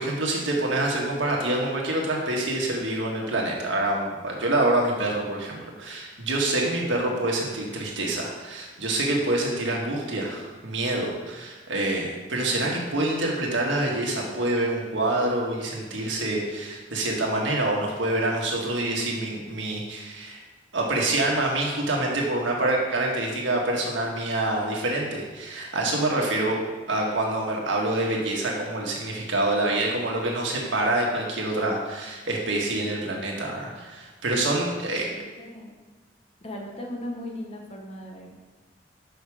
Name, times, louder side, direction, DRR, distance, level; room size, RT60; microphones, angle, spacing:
voice 1, 0.0-20.4 20.7-26.6 26.9-35.1, right 2 dB, 90° right, -1 dB, 1.6 m, -26 dB
voice 2, 34.8-35.7 36.4-38.5, left 1 dB, 35° left, 0 dB, 1.2 m, -38 dB
6.7 x 5.8 x 4.9 m, 1.3 s
head